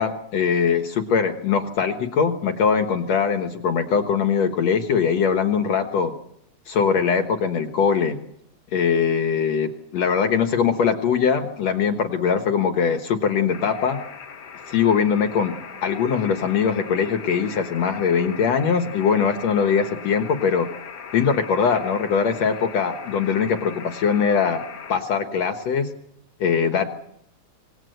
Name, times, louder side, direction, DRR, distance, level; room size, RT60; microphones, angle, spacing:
voice 1, 0.0-6.1 6.7-8.2 8.7-14.0 14.7-20.7 21.1-24.6 24.9-25.9 26.4-26.9, left 6 dB, 60° left, 7 dB, 2.2 m, -21 dB
sound 1, 13.5-25.0, left 6 dB, 75° left, 0.9 m, -39 dB
25.5 x 19.0 x 7.9 m, 0.75 s
omnidirectional pair, 3.7 m